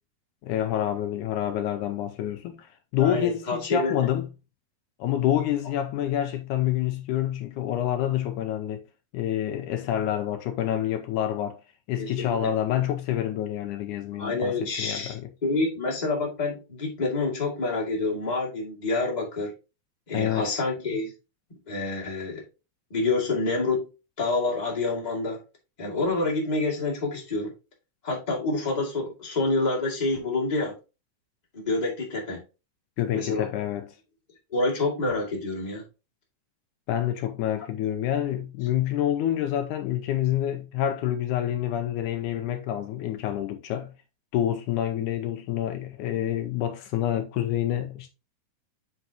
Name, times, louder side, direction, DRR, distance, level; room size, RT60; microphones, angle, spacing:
voice 1, 0.4-2.7 2.9-4.3 5.0-8.8 9.1-11.6 11.9-15.3 20.1-20.5 33.0-33.9 36.9-43.9 44.3-48.1, left 11 dB, 80° left, 2.0 m, -27 dB
voice 2, 3.0-4.1 12.0-12.5 14.2-15.2 15.4-19.5 20.1-21.1 21.7-22.4 22.9-23.9 24.2-25.4 25.8-27.5 28.0-30.7 31.5-32.4 33.1-33.5 34.5-35.8, left 3 dB, 15° left, 1.9 m, -27 dB
8.0 x 5.5 x 2.9 m
omnidirectional pair, 3.8 m